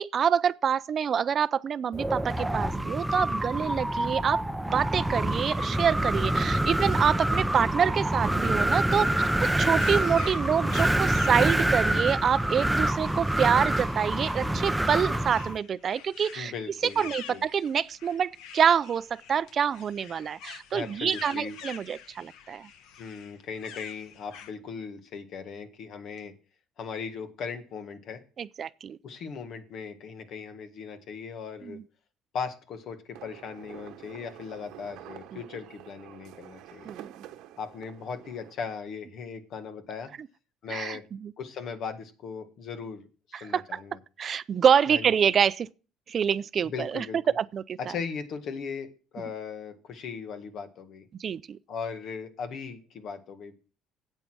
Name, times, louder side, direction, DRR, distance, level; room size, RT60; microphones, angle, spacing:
voice 1, 0.0-4.4 4.7-9.3 9.6-16.5 17.0-22.7 28.4-29.0 31.6-31.8 36.9-37.1 40.7-41.3 43.3-43.8 44.2-45.7 46.1-47.1 47.4-47.8 51.2-51.6, right 7 dB, 45° right, 0.5 m, -26 dB
Wind, 1.9-15.6, right 1 dB, 5° right, 0.6 m, -26 dB
voice 2, 9.0-9.6 16.3-17.4 20.7-21.6 23.0-26.3 26.8-28.2 29.0-31.8 32.3-36.9 37.6-40.1 40.6-41.0 41.4-44.0 44.9-45.1 46.6-47.4 47.8-51.1 51.7-53.5, left 6 dB, 65° left, 1.7 m, -38 dB
sound 1, 9.7-24.5, left 8 dB, 80° left, 1.0 m, -47 dB
sound 2, 33.1-38.5, right 12 dB, 80° right, 1.1 m, -48 dB
8.9 x 8.3 x 6.2 m
cardioid pair, 95°, 0 cm